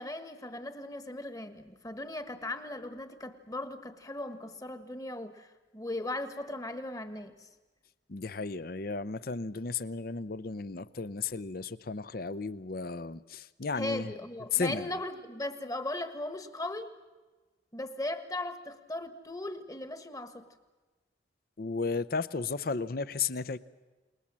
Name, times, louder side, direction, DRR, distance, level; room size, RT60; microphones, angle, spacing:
voice 1, 0.0-7.5 13.7-17.0 17.7-20.5, left 1 dB, 20° left, 10 dB, 1.4 m, -38 dB
voice 2, 8.1-14.1 14.5-14.9 21.6-23.6, left 4 dB, 55° left, 16 dB, 0.7 m, -34 dB
28.5 x 20.5 x 7.5 m, 1.2 s
head